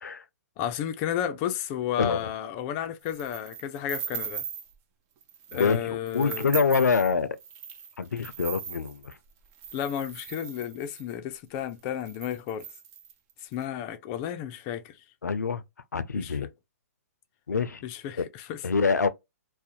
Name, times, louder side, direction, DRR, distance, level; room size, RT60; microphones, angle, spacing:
voice 1, 0.6-4.4 5.5-6.5 9.7-12.7 13.4-15.0 16.1-16.4 17.8-18.6, left 10 dB, 30° left, 0.4 m, -32 dB
voice 2, 2.0-2.3 5.5-7.4 8.0-9.1 15.2-15.6 15.9-16.5 17.5-17.8 18.2-18.3 18.6-19.1, left 5 dB, 90° left, 0.4 m, -25 dB
sound 1, 3.1-4.8 5.2-5.8 6.1-11.1 11.7-11.8 12.0-13.5, right 8 dB, 30° right, 0.5 m, -39 dB
2.4 x 2.1 x 2.7 m
hypercardioid pair, 135°, 9 cm